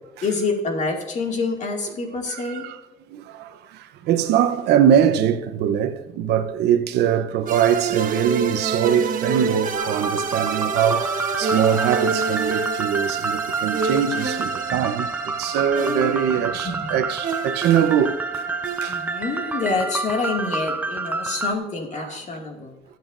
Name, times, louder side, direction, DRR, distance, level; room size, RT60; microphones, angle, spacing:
voice 1, 0.2-2.7 16.4-16.8 18.9-22.7, left 3 dB, 45° left, 2.3 m, -27 dB
voice 2, 2.3-2.8 3.1-11.1 11.4-18.2 18.8-19.0 21.9-22.2, right 9 dB, 80° right, 0.9 m, -22 dB
sound 1, 7.5-19.7, right 5 dB, 55° right, 1.3 m, -28 dB
sound 2, 9.8-21.5, right 3 dB, 10° right, 0.4 m, -29 dB
19.5 x 7.9 x 2.6 m
cardioid pair, 110°, 17 cm